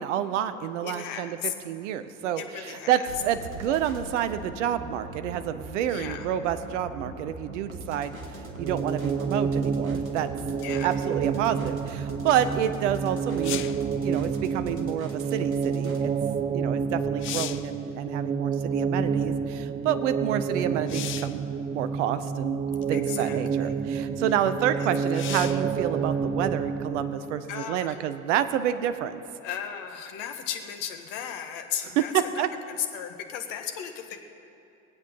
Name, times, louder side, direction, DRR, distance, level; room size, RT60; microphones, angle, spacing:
voice 1, 0.0-8.2 8.6-10.3 10.8-13.7 14.0-16.1 16.5-21.4 21.7-22.6 22.9-29.2 32.0-32.5, right 10 dB, 60° right, 11 dB, 0.8 m, -29 dB
voice 2, 0.8-1.5 2.4-3.1 5.9-6.3 10.6-10.9 22.9-23.7 24.8-24.9 27.5-28.0 29.4-34.2, left 9 dB, 50° left, 6 dB, 1.5 m, -35 dB
sound 1, 3.1-16.1, right 2 dB, 90° right, 1.3 m, -41 dB
sound 2, 8.6-27.4, right 6 dB, 20° right, 0.5 m, -29 dB
sound 3, 13.4-13.9 16.5-16.6 17.0-17.7 20.9-21.4 22.4-22.5 25.1-25.7 29.3-29.4, left 12 dB, 30° left, 0.5 m, -35 dB
20.5 x 8.2 x 5.5 m, 2.7 s
figure-of-eight pair, 65°, 41 cm